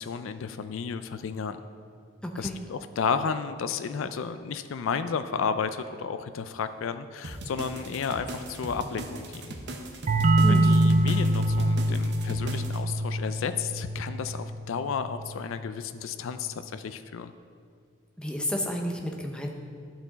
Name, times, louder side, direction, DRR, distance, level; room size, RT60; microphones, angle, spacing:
voice 1, 0.0-1.6 2.4-9.5 10.5-17.3, left 6 dB, 75° left, 11 dB, 0.4 m, -32 dB
voice 2, 2.2-2.6 10.4-10.7 18.2-19.5, equal, 5° left, 1 dB, 0.7 m, -31 dB
sound 1, 7.2-12.8, right 1 dB, 55° right, 0.8 m, -39 dB
sound 2, 10.1-15.5, right 1 dB, 35° right, 0.4 m, -25 dB
11.5 x 6.0 x 4.0 m, 2.2 s
head